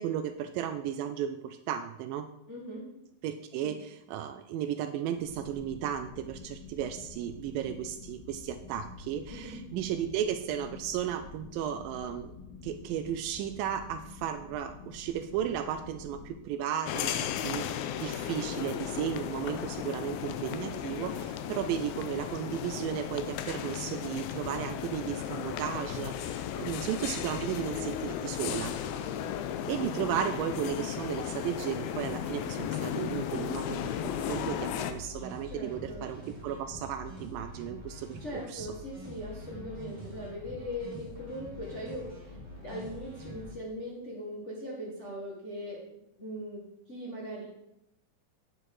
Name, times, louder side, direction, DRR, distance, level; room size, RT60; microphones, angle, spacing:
voice 1, 0.0-2.3 3.2-12.3 12.6-17.7 18.0-28.8 29.7-38.7, right 9 dB, 80° right, 9 dB, 2.1 m, -34 dB
voice 2, 2.5-2.9 3.6-3.7 9.3-9.6 35.4-36.0 38.2-46.6 46.9-47.4, left 1 dB, 45° left, -5 dB, 0.9 m, -40 dB
sound 1, 5.2-16.4, left 4 dB, 10° left, 2.6 m, -48 dB
sound 2, 16.9-34.9, left 9 dB, 85° left, 2.4 m, -35 dB
sound 3, 34.1-43.5, right 1 dB, 10° right, 3.1 m, -45 dB
9.2 x 7.8 x 4.8 m, 0.85 s
omnidirectional pair, 4.3 m